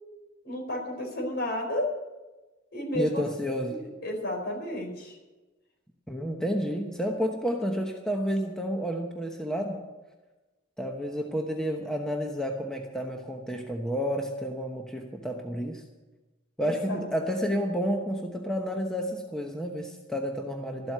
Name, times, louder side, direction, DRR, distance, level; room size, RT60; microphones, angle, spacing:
voice 1, 0.4-1.9 2.7-3.2 3.7-5.2 16.6-17.0, left 1 dB, 55° left, 1 dB, 4.5 m, -32 dB
voice 2, 2.9-3.8 6.1-9.8 10.8-15.8 16.6-20.9, equal, 5° left, 2 dB, 1.0 m, -30 dB
13.5 x 7.9 x 9.3 m, 1.1 s
head